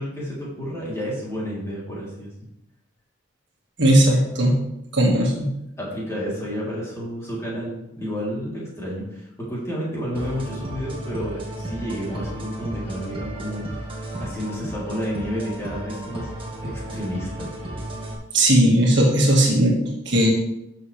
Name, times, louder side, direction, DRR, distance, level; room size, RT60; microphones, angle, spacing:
voice 1, 0.0-2.3 5.8-13.8 14.1-16.3 16.6-17.5, equal, 15° left, -6 dB, 3.2 m, -30 dB
voice 2, 3.8-4.6 4.9-5.5 18.3-20.3, right 1 dB, 60° right, -1 dB, 1.9 m, -17 dB
sound 1, 10.1-18.1, right 1 dB, 25° right, 1.7 m, -34 dB
12.0 x 6.6 x 3.4 m, 0.85 s
head